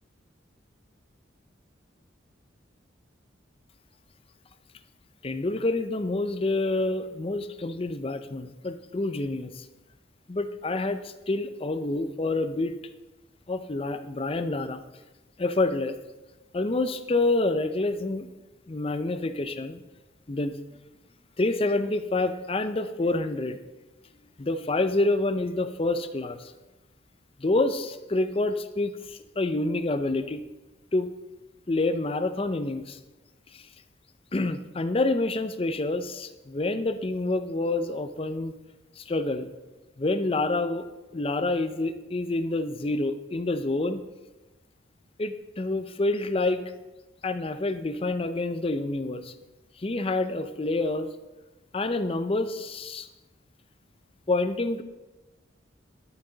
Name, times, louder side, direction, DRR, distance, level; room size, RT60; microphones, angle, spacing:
voice 1, 5.2-9.7 10.3-12.7 13.5-14.8 15.4-16.0 16.5-18.3 18.7-19.8 20.3-20.6 21.4-23.6 24.4-26.5 27.4-30.4 30.9-31.1 31.7-33.0 33.5-33.7 34.3-38.6 39.0-39.5 40.0-40.8 41.1-44.0 45.2-46.6 47.2-49.3 49.8-51.1 51.7-53.1 54.3-54.8, left 2 dB, 30° left, 10 dB, 0.5 m, -27 dB
11.0 x 8.8 x 3.9 m, 1.1 s
head